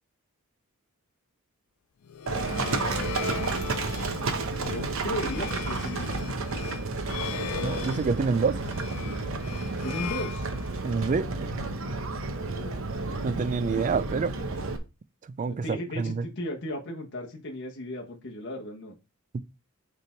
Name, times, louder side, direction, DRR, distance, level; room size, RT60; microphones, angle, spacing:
sound 1, 2.0-11.1, left 8 dB, 85° left, 0.4 m, -39 dB
Livestock farm animals working animals, 2.3-14.8, right 3 dB, 70° right, 0.9 m, -31 dB
voice 1, 2.4-3.6 4.5-6.3 9.8-10.5 12.4-12.8 13.6-13.8 15.5-18.9, left 1 dB, 55° left, 1.2 m, -36 dB
voice 2, 7.6-8.6 10.8-11.5 13.2-14.3 15.4-16.3, right 5 dB, 35° right, 0.3 m, -27 dB
6.6 x 3.6 x 4.4 m
head